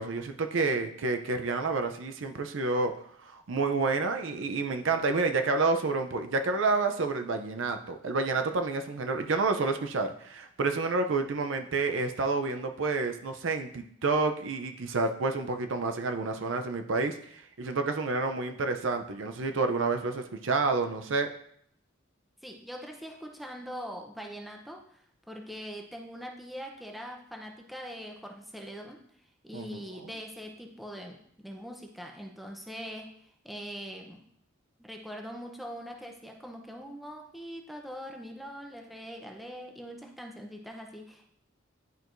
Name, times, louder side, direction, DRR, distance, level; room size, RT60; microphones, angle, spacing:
voice 1, 0.0-2.9 3.2-21.3 29.5-29.8, right 3 dB, 70° right, 6 dB, 0.6 m, -29 dB
voice 2, 22.4-29.0 29.4-33.1 33.4-34.2 34.8-41.3, equal, ahead, 1 dB, 0.7 m, -42 dB
10.5 x 4.6 x 2.6 m, 0.67 s
head